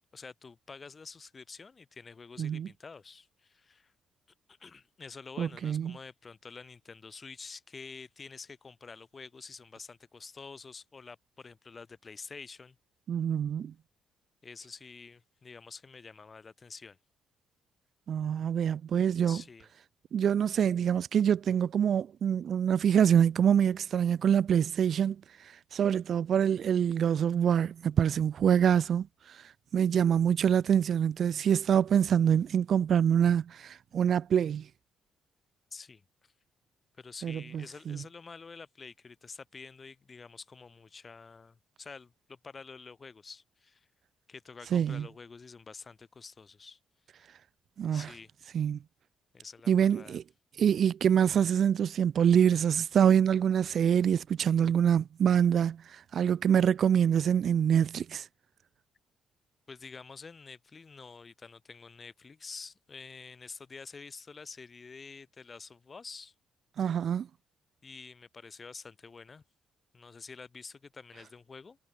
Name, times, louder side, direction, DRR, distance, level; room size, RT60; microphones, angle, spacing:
voice 1, 0.1-3.9 4.5-12.8 14.4-17.0 19.3-19.7 35.7-36.0 37.0-43.9 44.3-46.8 47.9-48.3 49.3-50.2 59.7-66.3 67.8-69.4 69.9-71.8, left 4 dB, 35° left, 7.0 m, -48 dB
voice 2, 5.4-5.9 13.1-13.7 18.1-19.4 20.1-25.2 25.7-29.4 29.7-34.7 37.2-38.0 44.7-45.1 47.8-48.1 48.5-48.8 49.7-50.2 50.6-58.2 66.8-67.3, right 8 dB, 60° right, 0.3 m, -25 dB
cardioid pair, 90°, 0 cm